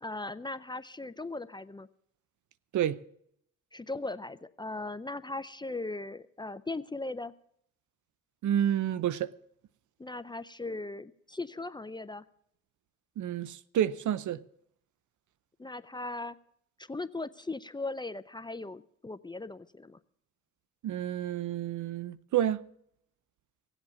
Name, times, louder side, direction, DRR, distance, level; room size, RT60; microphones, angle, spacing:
voice 1, 0.0-1.9 3.7-7.3 10.0-12.2 15.6-16.4 16.8-20.0, left 2 dB, 15° left, 0.5 m, -38 dB
voice 2, 8.4-9.3 13.2-14.4 20.8-22.6, right 10 dB, 65° right, 0.7 m, -29 dB
17.0 x 8.1 x 7.1 m
cardioid pair, 80°, 32 cm